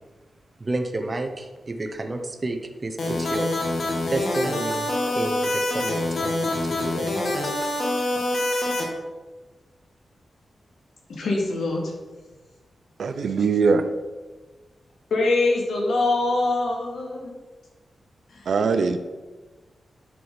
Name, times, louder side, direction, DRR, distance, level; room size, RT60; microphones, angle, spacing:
voice 1, 0.6-3.5 4.1-6.5 6.8-7.5, right 2 dB, 25° right, 5 dB, 0.9 m, -31 dB
sound 1, 3.0-8.8, left 1 dB, 50° left, 2.0 m, -25 dB
voice 2, 11.1-11.8 15.1-17.4 18.3-18.4, left 2 dB, 80° left, -1 dB, 2.6 m, -23 dB
voice 3, 13.0-13.8 18.5-19.0, right 5 dB, 65° right, 9 dB, 0.7 m, -21 dB
9.5 x 6.3 x 5.7 m, 1.3 s
wide cardioid pair, 175°, 0 cm